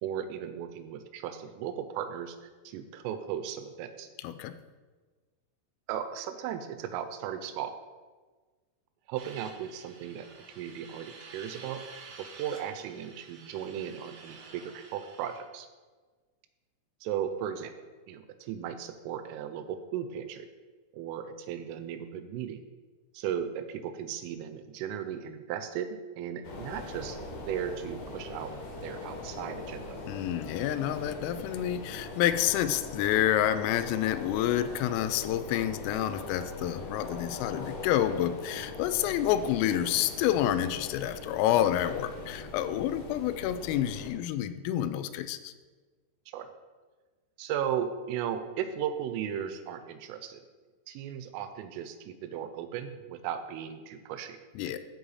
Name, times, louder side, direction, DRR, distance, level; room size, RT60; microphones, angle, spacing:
voice 1, 0.0-4.1 5.9-7.7 9.1-10.3 10.6-11.8 12.2-15.7 17.0-17.7 18.1-20.5 20.9-22.6 23.1-27.2 27.5-28.5 28.8-30.0 46.3-46.5 47.4-50.4 50.9-54.4, right 9 dB, 85° right, 9 dB, 3.2 m, -36 dB
voice 2, 4.2-4.6 30.1-45.5 54.6-54.8, left 11 dB, 90° left, 11 dB, 3.2 m, -28 dB
sound 1, 9.2-15.4, right 4 dB, 70° right, 2.5 m, -50 dB
sound 2, 26.4-44.1, left 2 dB, 70° left, 1.9 m, -41 dB
13.5 x 4.8 x 4.1 m, 1.4 s
omnidirectional pair, 5.8 m